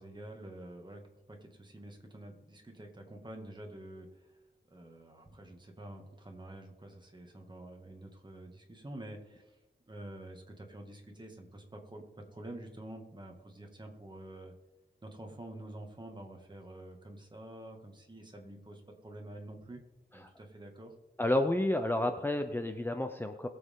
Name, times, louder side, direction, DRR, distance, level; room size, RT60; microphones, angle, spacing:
voice 1, 0.0-4.4 4.7-9.6 9.9-14.5 15.0-19.8 20.1-20.9, right 1 dB, 25° right, 2 dB, 2.2 m, -48 dB
voice 2, 21.2-23.5, left 1 dB, 10° left, 6 dB, 0.7 m, -30 dB
21.5 x 7.9 x 3.8 m, 1.1 s
wide cardioid pair, 115°, 18 cm